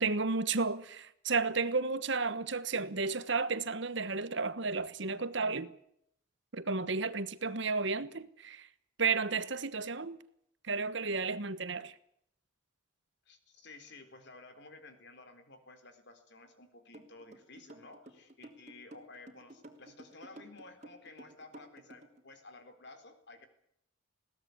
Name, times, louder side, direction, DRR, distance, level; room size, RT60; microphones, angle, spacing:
voice 1, 0.0-5.7 6.5-8.7 9.0-10.2 10.6-11.9, right 4 dB, 60° right, 1.2 m, -32 dB
voice 2, 13.3-23.5, left 3 dB, 55° left, 3.9 m, -54 dB
sound 1, 16.9-22.2, right 1 dB, 35° right, 3.2 m, -52 dB
21.0 x 17.5 x 9.7 m
head